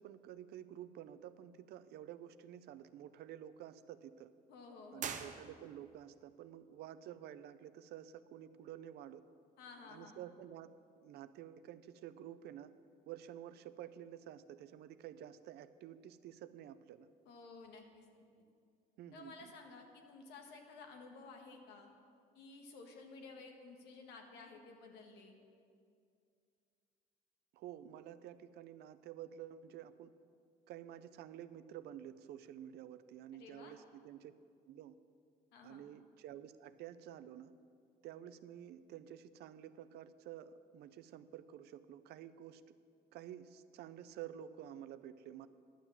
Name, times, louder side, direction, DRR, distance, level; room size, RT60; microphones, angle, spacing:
voice 1, 0.0-4.3 4.9-9.2 9.9-10.7 11.0-12.7 13.1-17.1 19.0-19.5 27.5-30.1 30.7-34.3 34.7-34.9 35.6-37.5 38.0-42.8 43.1-45.5, right 11 dB, 75° right, 13 dB, 0.5 m, -51 dB
voice 2, 4.5-5.3 9.6-10.2 17.2-18.2 19.1-21.9 22.3-25.4 33.3-33.8 35.5-35.8, left 4 dB, 90° left, 3 dB, 1.5 m, -54 dB
sound 1, 5.0-6.0, right 7 dB, 45° right, 0.8 m, -44 dB
11.5 x 7.1 x 7.2 m, 2.3 s
cardioid pair, 110°, 17 cm